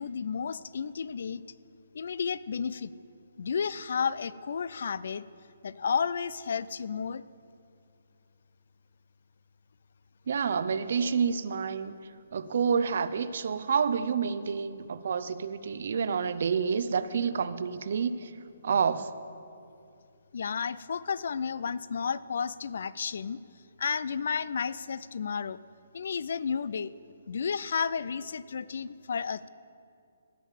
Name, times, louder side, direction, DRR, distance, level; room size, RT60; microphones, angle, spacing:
voice 1, 0.0-1.4 1.9-2.9 3.4-5.2 5.6-7.2 20.3-23.4 23.8-25.6 25.9-26.9 27.3-29.5, left 6 dB, 60° left, 18 dB, 0.4 m, -32 dB
voice 2, 10.3-12.0 12.3-18.3 18.6-19.1, right 6 dB, 55° right, 13 dB, 0.5 m, -28 dB
16.5 x 5.5 x 7.3 m, 2.5 s
hypercardioid pair, 165°, 0 cm